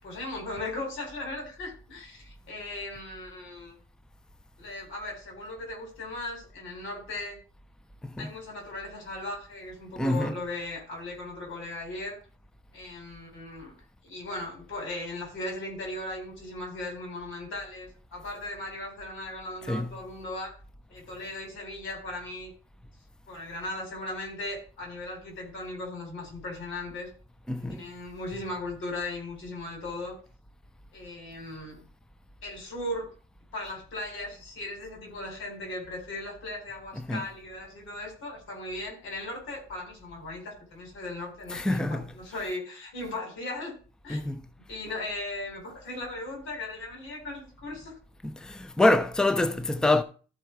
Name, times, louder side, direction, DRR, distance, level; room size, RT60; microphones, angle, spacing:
voice 1, 0.0-3.8 4.6-7.4 8.2-12.2 12.7-13.8 14.0-20.5 20.9-22.5 23.3-27.1 27.6-30.2 30.9-31.8 32.4-33.1 33.5-43.7 44.0-44.2 44.7-47.9, left 2 dB, 80° left, 4.3 m, -37 dB
voice 2, 10.0-10.3 19.7-19.9 27.5-27.8 37.0-37.2 41.5-42.0 44.1-44.4 48.4-50.0, left 2 dB, 5° left, 0.6 m, -25 dB
13.5 x 4.8 x 4.6 m
cardioid pair, 90°, 20 cm